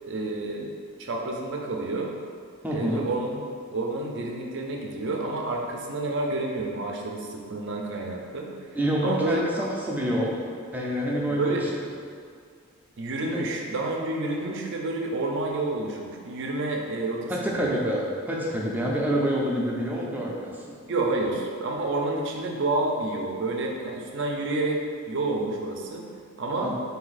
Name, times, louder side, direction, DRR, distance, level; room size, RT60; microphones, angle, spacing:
voice 1, 0.1-0.7 1.0-2.1 2.7-3.4 3.7-8.5 9.0-9.7 11.3-11.6 13.0-17.7 20.9-26.1 26.4-26.7, right 2 dB, 55° right, 0 dB, 0.5 m, -29 dB
voice 2, 2.6-3.0 8.7-10.4 10.7-11.6 17.3-20.7 26.6-26.7, equal, 10° right, -4 dB, 0.5 m, -27 dB
4.2 x 2.7 x 4.0 m, 2.1 s
head